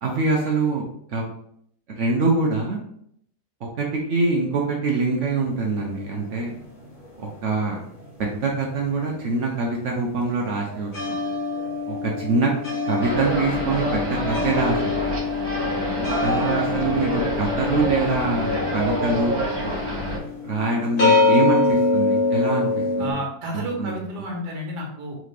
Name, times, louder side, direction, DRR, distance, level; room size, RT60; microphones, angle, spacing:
voice 1, 0.0-0.8 1.1-1.3 2.0-2.8 3.8-6.5 7.2-7.8 8.2-11.2 11.9-12.5 12.8-15.0 16.2-19.4 20.4-22.7 23.0-23.2 23.5-24.0, right 3 dB, 60° right, -1 dB, 0.8 m, -24 dB
sound 1, 5.4-8.1 8.3-23.1, left 3 dB, 40° left, 1.0 m, -25 dB
sound 2, 13.0-20.2, equal, 20° right, 0.8 m, -26 dB
voice 2, 23.0-25.2, right 1 dB, 80° right, 0 dB, 1.5 m, -31 dB
3.7 x 3.3 x 3.2 m, 0.69 s
omnidirectional pair, 1.8 m